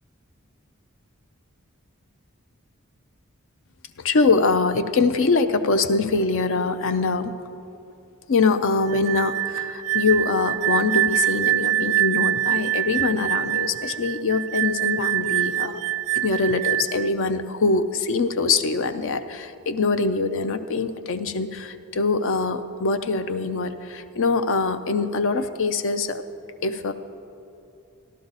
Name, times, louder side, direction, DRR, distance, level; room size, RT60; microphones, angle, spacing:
voice 1, 4.0-7.3 8.3-15.8 16.1-26.2 26.6-26.9, left 3 dB, 65° left, 9 dB, 0.5 m, -23 dB
sound 1, 8.9-17.1, right 14 dB, 75° right, 0.4 m, -25 dB
14.0 x 12.0 x 4.0 m, 2.6 s
head